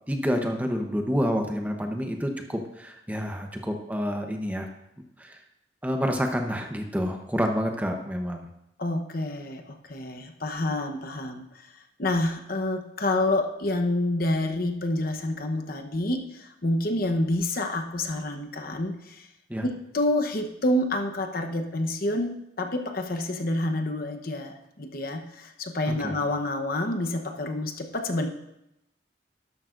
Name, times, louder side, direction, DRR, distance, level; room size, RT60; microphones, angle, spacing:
voice 1, 0.1-4.7 5.2-5.4 5.8-8.5 19.5-19.6 26.0-26.1, equal, 10° right, 3 dB, 0.9 m, -28 dB
voice 2, 8.8-11.7 12.0-19.3 19.6-28.3, left 1 dB, 50° left, 5 dB, 1.0 m, -28 dB
12.0 x 11.5 x 2.6 m, 0.83 s
head